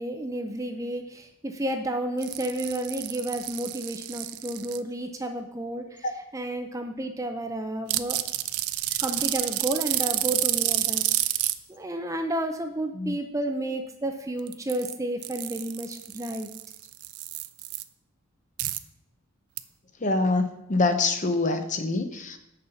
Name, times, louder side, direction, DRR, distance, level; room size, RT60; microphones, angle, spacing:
voice 1, 0.0-6.0 6.3-8.2 9.0-11.0 11.7-16.5, right 1 dB, 15° right, 5 dB, 0.5 m, -31 dB
Beads-Pulled-by JGrimm, 2.2-4.8 7.9-11.5 14.4-14.9 15.2-17.8 18.6-18.8 19.6-19.7, right 15 dB, 90° right, 0.5 m, -29 dB
voice 2, 20.0-22.4, left 3 dB, 35° left, 7 dB, 0.7 m, -25 dB
6.7 x 5.4 x 7.0 m, 0.88 s
head